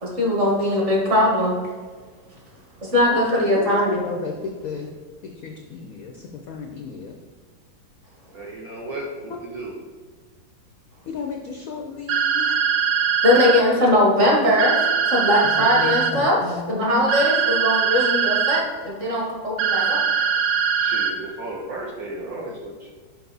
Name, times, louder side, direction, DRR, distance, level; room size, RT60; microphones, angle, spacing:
voice 1, 0.0-1.6 2.8-4.0 13.2-14.8 15.1-20.0, left 1 dB, 40° right, -3 dB, 1.8 m, -20 dB
voice 2, 3.1-4.9 5.2-6.1 6.5-7.1 11.1-12.6 15.7-17.1, left 4 dB, 75° left, 3 dB, 0.8 m, -33 dB
voice 3, 8.3-9.8 13.6-13.8 20.8-22.9, right 2 dB, 60° right, -1 dB, 1.1 m, -34 dB
sound 1, 12.1-13.6 14.6-16.1 17.1-18.6 19.6-21.1, right 7 dB, 85° right, 1.5 m, -21 dB
5.8 x 5.3 x 3.9 m, 1.5 s
omnidirectional pair, 2.1 m